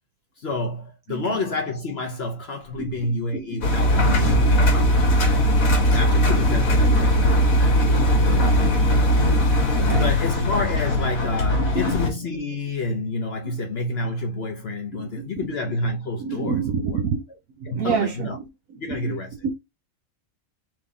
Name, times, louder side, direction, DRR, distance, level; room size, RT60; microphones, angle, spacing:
voice 1, 0.4-5.1 5.9-7.3 7.8-8.0 8.3-8.4 9.9-16.6 16.9-17.0 17.7-18.4 18.8-19.3, left 2 dB, 55° left, 0.9 m, -29 dB
voice 2, 1.1-1.4 2.8-3.6 3.9-4.9 5.1-5.2 6.8-7.1 7.5-7.6 8.3-10.1 11.6-12.0 13.4-13.5 14.9-15.5 16.2-17.2 17.6-18.4 18.7-19.5, right 6 dB, 75° right, 1.2 m, -30 dB
Engine, 3.6-12.1, equal, 80° left, 1.7 m, -19 dB
3.6 x 3.0 x 3.7 m
omnidirectional pair, 1.5 m